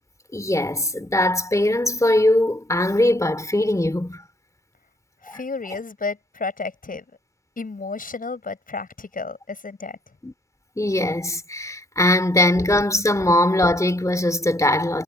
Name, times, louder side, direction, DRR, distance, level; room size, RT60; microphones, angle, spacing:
voice 1, 0.3-4.2 5.3-5.4 10.2-10.3 10.8-15.0, left 1 dB, 20° left, 3.2 m, -20 dB
voice 2, 5.2-7.0 7.6-10.0, left 4 dB, 65° left, 7.1 m, -32 dB
wide cardioid pair, 80°, 15 cm